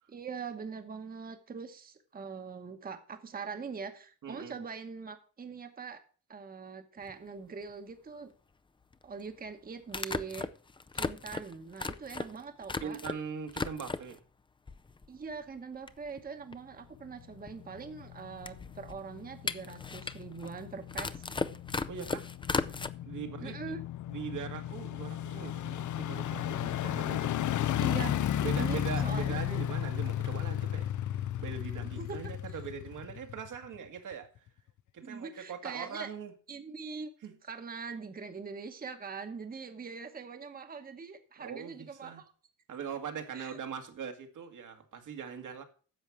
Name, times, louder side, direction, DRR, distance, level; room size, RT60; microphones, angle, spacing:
voice 1, 0.1-6.0 6.3-8.3 9.0-10.5 10.9-13.0 15.1-21.2 23.4-23.8 27.7-29.3 31.8-32.3 35.0-36.1 36.5-37.1 37.4-42.3 43.3-43.6, right 5 dB, 30° right, 1.0 m, -42 dB
voice 2, 4.2-4.6 12.8-14.2 21.9-22.3 23.0-23.7 24.1-27.3 28.4-34.5 34.9-36.3 37.2-37.4 41.4-42.2 42.7-45.6, right 7 dB, 75° right, 1.9 m, -41 dB
sound 1, 7.1-7.2 8.9-9.0 9.9-13.2 13.5-14.2 14.7-15.3 15.6-15.7 15.9-22.9, left 4 dB, 15° left, 0.4 m, -37 dB
sound 2, 17.2-33.7 34.1-34.2, left 11 dB, 70° left, 0.6 m, -35 dB
10.5 x 7.3 x 6.2 m
wide cardioid pair, 165°, 31 cm